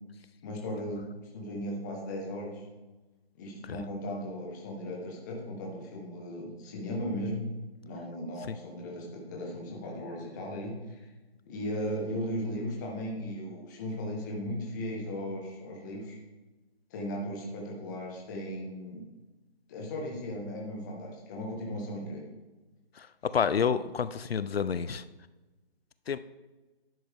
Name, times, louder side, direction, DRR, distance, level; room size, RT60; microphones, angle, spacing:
voice 1, 0.4-1.0 1.3-2.6 3.3-7.5 7.8-11.1 11.5-16.2 16.9-19.0 19.7-22.2, equal, 20° left, -2 dB, 1.3 m, -36 dB
voice 2, 23.3-25.0 26.1-26.2, left 7 dB, 70° left, 14 dB, 0.5 m, -28 dB
10.5 x 7.9 x 3.6 m, 1.2 s
hypercardioid pair, 160°, 31 cm